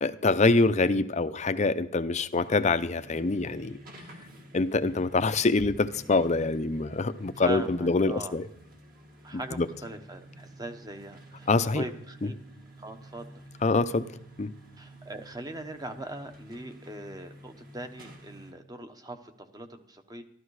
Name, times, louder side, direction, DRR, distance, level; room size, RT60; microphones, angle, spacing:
voice 1, 0.0-3.8 4.5-8.5 9.3-9.7 11.5-11.8 12.2-12.3 13.6-14.1 14.4-14.5, left 3 dB, 35° left, 12 dB, 0.6 m, -25 dB
sound 1, 2.3-18.5, equal, 45° right, 2.1 m, -50 dB
voice 2, 7.4-8.3 9.2-11.5 11.7-12.4 12.8-13.4 14.8-20.2, right 2 dB, 20° right, 7 dB, 1.0 m, -40 dB
13.5 x 13.0 x 4.8 m, 0.73 s
head